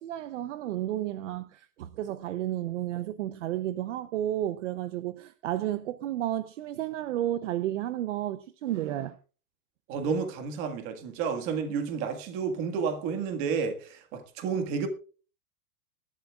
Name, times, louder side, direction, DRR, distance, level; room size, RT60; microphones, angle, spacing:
voice 1, 0.0-9.2, right 13 dB, 55° right, 0.7 m, -32 dB
voice 2, 9.9-14.9, right 6 dB, 25° right, 1.7 m, -31 dB
21.0 x 12.0 x 2.4 m
supercardioid pair, 170°, 45 cm